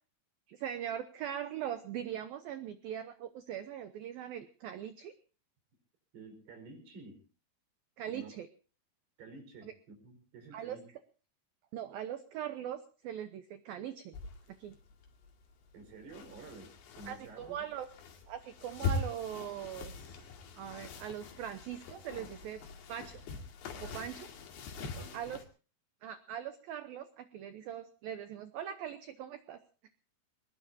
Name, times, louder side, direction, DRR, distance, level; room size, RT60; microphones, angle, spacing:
voice 1, 0.5-5.1 8.0-8.5 9.6-9.7 10.5-10.8 11.7-14.2 14.6-14.8 17.1-17.9 18.3-20.2 20.6-22.6 22.9-23.2 23.8-24.3 25.1-25.4 26.0-29.6, right 10 dB, 90° right, 10 dB, 2.0 m, -41 dB
voice 2, 6.1-7.3 8.1-8.3 9.2-10.8 15.7-17.7 23.8-24.1 24.8-25.4, right 3 dB, 55° right, 5 dB, 6.4 m, -51 dB
sound 1, 14.1-25.5, left 4 dB, 65° left, 4.2 m, -42 dB
23.0 x 20.0 x 2.7 m, 0.37 s
omnidirectional pair, 5.6 m